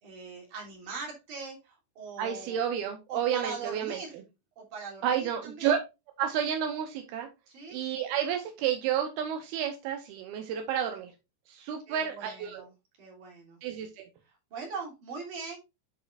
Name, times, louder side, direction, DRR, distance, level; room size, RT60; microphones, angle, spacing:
voice 1, 0.0-2.6 3.1-4.2 4.6-5.7 7.5-7.8 11.9-12.7 13.0-13.6 14.5-15.6, right 5 dB, 45° right, -1 dB, 4.2 m, -41 dB
voice 2, 2.2-4.2 5.0-5.8 6.2-7.3 7.7-11.1 11.5-12.6 13.6-14.1, right 9 dB, 75° right, 5 dB, 2.4 m, -31 dB
11.0 x 5.5 x 2.6 m, 0.24 s
omnidirectional pair, 5.5 m